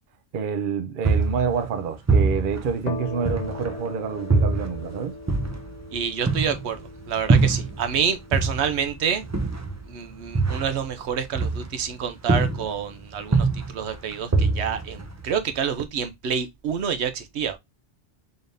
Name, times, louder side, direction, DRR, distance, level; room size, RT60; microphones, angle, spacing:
voice 1, 0.3-5.1, right 6 dB, 55° right, 0.7 m, -27 dB
sound 1, 1.0-3.9 4.3-8.0 8.3-12.0 12.3-12.9 13.2-15.5, right 3 dB, 25° right, 0.4 m, -24 dB
sound 2, 2.8-10.3, left 3 dB, 45° left, 0.6 m, -40 dB
voice 2, 5.9-9.2 9.9-17.6, right 7 dB, 75° right, 0.9 m, -28 dB
4.0 x 3.4 x 2.5 m
omnidirectional pair, 1.1 m